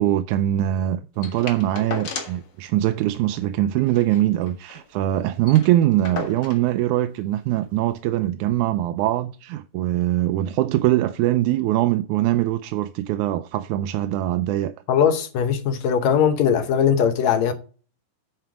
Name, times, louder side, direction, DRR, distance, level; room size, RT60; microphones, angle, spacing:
voice 1, 0.0-14.7, right 13 dB, 80° right, 1.9 m, -22 dB
sound 1, 1.2-2.5 2.8-2.9 3.2-3.4 3.8-4.9 5.2-5.3 5.4-6.7 7.6-7.7, left 5 dB, 45° left, 1.6 m, -35 dB
voice 2, 14.9-17.5, left 8 dB, 65° left, 2.0 m, -20 dB
9.3 x 4.5 x 5.9 m
omnidirectional pair, 3.7 m